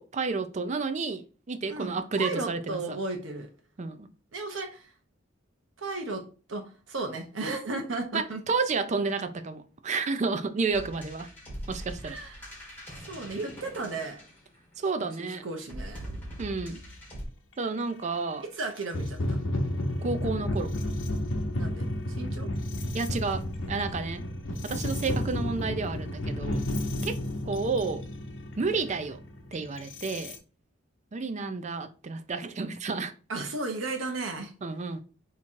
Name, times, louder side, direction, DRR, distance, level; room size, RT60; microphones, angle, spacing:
voice 1, 0.0-3.0 3.8-4.1 8.1-11.3 11.7-12.2 14.8-15.4 16.4-16.8 17.6-18.4 20.0-20.7 22.9-24.2 24.6-26.6 27.0-27.2 27.4-28.0 28.6-29.2 29.5-30.4 31.1-33.1 34.6-35.0, right 4 dB, 35° right, 0.4 m, -31 dB
voice 2, 1.7-3.5 4.3-4.9 5.8-6.2 6.5-8.4 12.0-12.4 13.1-14.2 15.2-16.1 18.5-19.4 21.6-21.9 22.2-22.5 33.3-34.5, right 3 dB, 75° right, 0.8 m, -34 dB
sound 1, 10.7-14.8 15.6-17.3, equal, 10° left, 1.6 m, -42 dB
sound 2, 17.8-17.9 18.8-30.4, left 1 dB, 75° left, 0.8 m, -32 dB
3.6 x 3.0 x 4.4 m
head